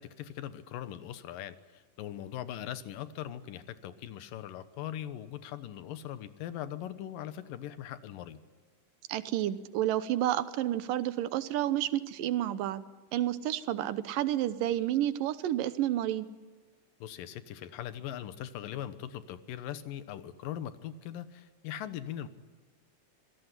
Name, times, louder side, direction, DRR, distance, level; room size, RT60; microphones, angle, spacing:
voice 1, 0.0-8.4 17.0-22.3, left 11 dB, 90° left, 13 dB, 2.9 m, -40 dB
voice 2, 9.1-12.8 13.1-16.3, right 12 dB, 85° right, 14 dB, 2.7 m, -30 dB
26.5 x 17.0 x 9.9 m, 1.4 s
omnidirectional pair, 3.8 m